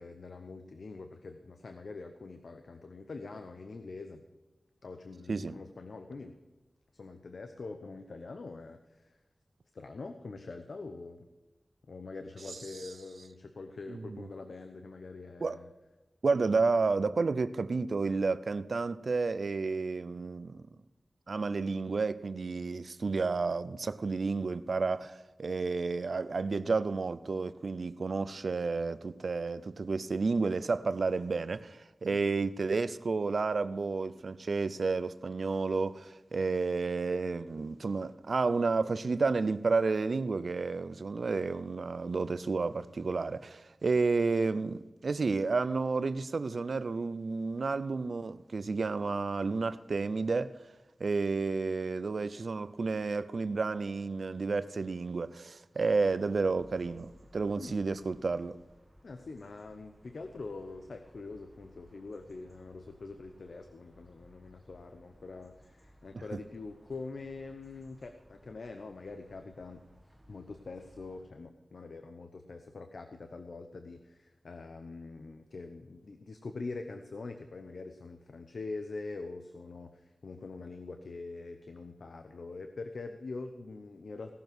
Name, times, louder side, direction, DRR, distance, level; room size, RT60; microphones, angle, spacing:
voice 1, 0.0-4.2 4.8-6.3 6.9-9.2 9.7-11.3 11.9-15.7 32.1-32.2 57.6-57.8 59.0-69.8 70.3-84.4, left 3 dB, 80° left, 0.8 m, -44 dB
voice 2, 16.2-20.6 21.3-50.6 51.0-58.6, right 4 dB, 75° right, 0.5 m, -31 dB
sound 1, 56.0-71.3, equal, 10° right, 1.7 m, -60 dB
17.5 x 6.9 x 6.2 m
wide cardioid pair, 55°, 0 cm